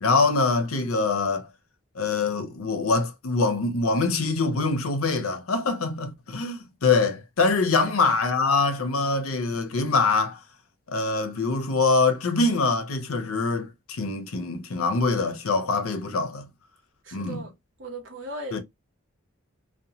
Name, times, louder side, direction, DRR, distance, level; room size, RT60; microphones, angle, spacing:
voice 1, 0.0-1.5 2.0-10.4 10.9-16.5 17.1-17.4 18.5-18.6, left 3 dB, 85° left, 0.7 m, -24 dB
voice 2, 17.0-17.5 17.8-18.6, right 2 dB, 60° right, 0.8 m, -37 dB
2.8 x 2.2 x 2.7 m
head